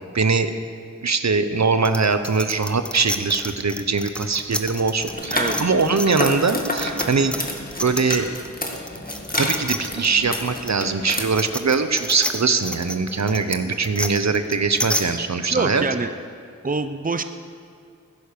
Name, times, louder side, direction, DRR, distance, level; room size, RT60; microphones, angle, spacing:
voice 1, 0.1-0.5 1.0-7.3 7.8-8.3 9.3-15.9, right 4 dB, 65° right, 10 dB, 0.9 m, -22 dB
sound 1, 1.8-8.5 8.8-15.0, equal, 5° left, 1.0 m, -30 dB
sound 2, 5.1-11.2, left 1 dB, 30° left, 2.0 m, -29 dB
voice 2, 15.5-16.1 16.6-17.2, right 4 dB, 30° right, 10 dB, 0.7 m, -25 dB
16.5 x 10.5 x 6.7 m, 2.4 s
wide cardioid pair, 55°, 30 cm